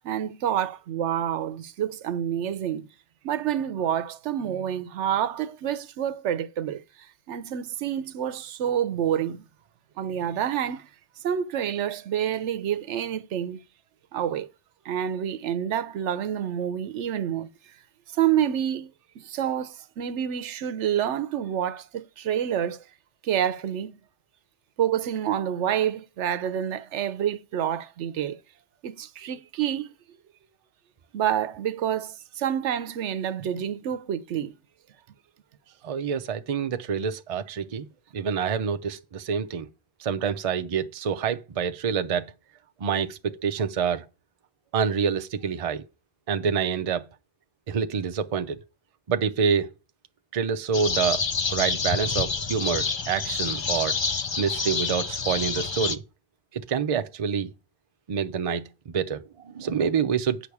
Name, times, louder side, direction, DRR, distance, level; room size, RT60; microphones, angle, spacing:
voice 1, 0.0-2.9 3.2-6.8 7.3-9.4 10.0-10.9 11.2-13.6 14.1-14.5 14.8-17.5 18.1-22.8 23.2-23.9 24.8-28.4 28.8-29.9 31.1-34.5, right 10 dB, 80° right, 0.9 m, -28 dB
voice 2, 35.8-37.9 38.1-39.7 40.0-42.3 42.8-44.0 44.7-45.8 46.3-47.1 47.7-48.6 49.1-49.7 50.3-51.2 51.5-54.0 54.4-56.0 56.5-57.5 58.1-60.4, right 6 dB, 40° right, 0.5 m, -27 dB
sound 1, 50.7-55.9, left 5 dB, 45° left, 0.3 m, -28 dB
8.5 x 5.8 x 4.7 m
omnidirectional pair, 1.2 m